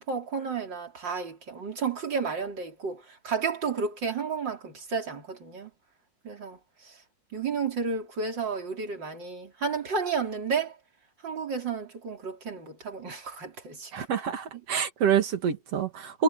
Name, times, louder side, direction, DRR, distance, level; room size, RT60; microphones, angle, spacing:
voice 1, 0.0-5.7 6.2-6.9 7.3-10.8 11.2-14.1, right 5 dB, 25° right, 3.8 m, -32 dB
voice 2, 13.9-16.2, right 7 dB, 65° right, 1.5 m, -27 dB
omnidirectional pair, 5.7 m